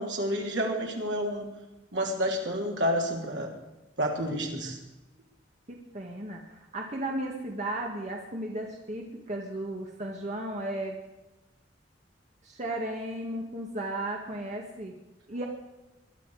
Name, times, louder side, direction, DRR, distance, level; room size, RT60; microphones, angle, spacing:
voice 1, 0.0-1.5 1.9-3.5 4.0-4.8, equal, 70° right, 0 dB, 3.5 m, -29 dB
voice 2, 5.7-11.0 12.4-14.9 15.3-15.5, right 1 dB, 40° right, 0 dB, 1.8 m, -35 dB
21.5 x 12.0 x 5.0 m, 1.0 s
head